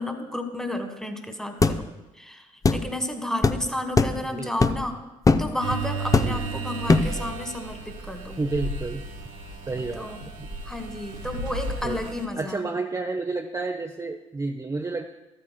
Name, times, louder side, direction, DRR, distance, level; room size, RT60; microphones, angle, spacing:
voice 1, 0.0-1.9 2.1-5.0 5.4-8.4 9.9-10.2 10.6-12.6, left 1 dB, 5° left, 6 dB, 1.5 m, -32 dB
sound 1, 1.6-1.8 2.6-2.8 3.4-3.6 4.0-4.2 4.6-4.9 5.3-5.5 6.1-6.5 6.9-7.2, left 3 dB, 20° left, 0.5 m, -20 dB
voice 2, 4.3-4.7 6.2-6.5 8.4-9.0 9.7-10.5 11.8-12.0 12.4-15.1, right 3 dB, 20° right, 3 dB, 0.6 m, -30 dB
sound 2, 5.6-12.3, right 3 dB, 80° right, 1.1 m, -34 dB
14.0 x 8.8 x 2.2 m, 1.0 s
hypercardioid pair, 45°, 16 cm